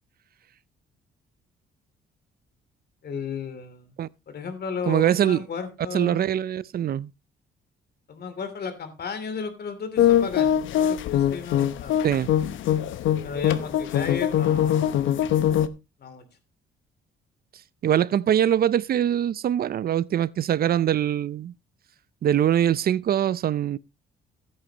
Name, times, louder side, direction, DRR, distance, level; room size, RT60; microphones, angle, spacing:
voice 1, 3.0-3.9 4.3-6.3 8.1-11.9 13.2-15.2 16.0-16.2, left 6 dB, 55° left, 2.9 m, -34 dB
voice 2, 4.9-5.4 5.9-7.1 12.0-12.3 17.8-21.5 22.2-23.8, right 10 dB, 50° right, 0.5 m, -23 dB
sound 1, 10.0-15.7, left 10 dB, 75° left, 0.9 m, -22 dB
15.0 x 8.7 x 2.9 m
cardioid pair, 90°, 20 cm